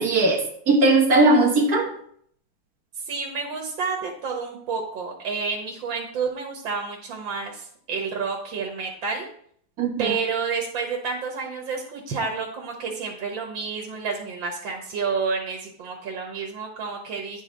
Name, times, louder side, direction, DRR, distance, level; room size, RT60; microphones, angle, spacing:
voice 1, 0.0-1.9 9.8-10.2, right 2 dB, 55° right, 1 dB, 1.9 m, -19 dB
voice 2, 3.1-9.3 10.0-17.4, right 5 dB, 85° right, 1 dB, 2.1 m, -30 dB
10.5 x 4.9 x 5.1 m, 0.63 s
omnidirectional pair, 2.0 m